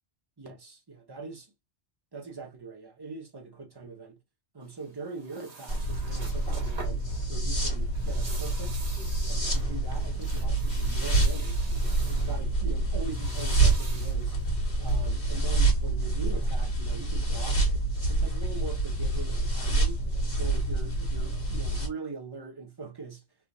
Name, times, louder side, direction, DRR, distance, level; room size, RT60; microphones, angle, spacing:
voice 1, 0.4-1.5 2.1-4.2 4.5-8.8 9.3-11.7 12.0-14.4 14.8-17.8 18.1-20.0 20.4-23.2, right 4 dB, 25° right, 0.7 m, -42 dB
sound 1, 4.6-15.4, right 4 dB, 75° right, 1.3 m, -47 dB
sound 2, 5.7-21.9, right 2 dB, 65° left, 1.8 m, -27 dB
3.5 x 2.4 x 2.6 m
omnidirectional pair, 1.1 m